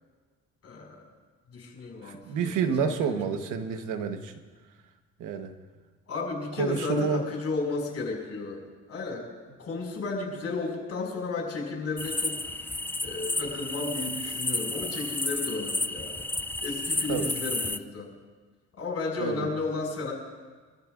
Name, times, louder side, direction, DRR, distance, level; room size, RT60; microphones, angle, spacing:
voice 1, 0.6-1.0 1.5-3.2 3.4-3.6 6.1-9.2 9.6-12.6 13.0-16.3 16.6-18.1 18.8-20.1, left 3 dB, 55° left, 1 dB, 5.5 m, -33 dB
voice 2, 2.0-4.3 5.2-5.5 6.6-7.2 17.1-17.3 19.2-19.5, right 6 dB, 90° right, 6 dB, 1.3 m, -29 dB
sound 1, 12.0-17.8, left 2 dB, 5° left, 0.4 m, -31 dB
25.0 x 13.5 x 2.6 m, 1.4 s
cardioid pair, 90°, 30 cm